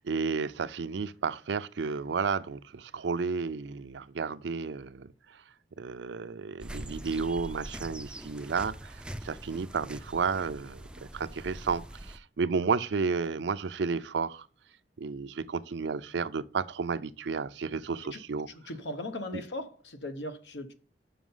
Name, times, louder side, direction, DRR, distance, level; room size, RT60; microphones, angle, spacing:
voice 1, 0.0-5.4 5.8-14.5 15.0-18.5 19.3-19.4, right 5 dB, 75° right, 0.5 m, -32 dB
sound 1, 6.6-12.2, right 1 dB, 5° right, 0.4 m, -43 dB
voice 2, 18.7-20.7, left 1 dB, 70° left, 1.0 m, -38 dB
6.2 x 5.7 x 5.5 m
head